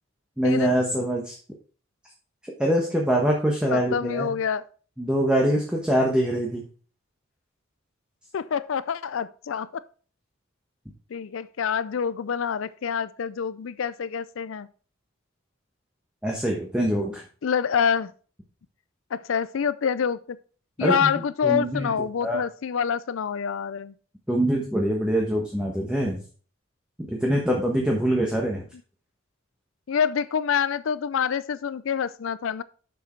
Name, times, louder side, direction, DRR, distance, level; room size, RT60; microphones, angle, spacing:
voice 1, 0.4-1.3 2.4-4.4 5.0-6.6 16.2-17.2 20.8-21.1 21.4-21.9 22.2-22.4 24.3-26.2 27.1-28.6, right 1 dB, 5° right, 1.2 m, -24 dB
voice 2, 3.7-4.6 8.3-9.8 11.1-14.7 17.4-18.1 19.1-20.4 20.8-23.9 29.9-32.6, left 7 dB, 70° left, 0.4 m, -26 dB
6.8 x 6.3 x 4.5 m
head